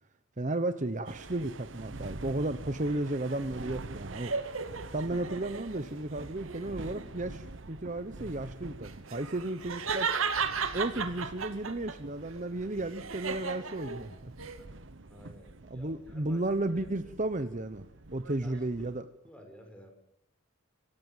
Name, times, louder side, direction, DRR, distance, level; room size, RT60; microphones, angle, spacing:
voice 1, 0.4-4.3 4.9-10.1 10.7-14.3 15.7-17.8 18.1-19.1, right 2 dB, 35° right, 11 dB, 1.0 m, -33 dB
sound 1, 1.1-19.0, right 2 dB, 60° right, 1.1 m, -47 dB
sound 2, 2.8-5.9 6.4-7.1 8.8-12.0 12.4-14.6, right 5 dB, 75° right, 2.2 m, -35 dB
voice 2, 15.1-16.4 17.0-17.1 18.4-18.9 19.2-19.9, equal, 5° left, 4 dB, 5.4 m, -53 dB
26.0 x 15.5 x 9.1 m, 0.76 s
head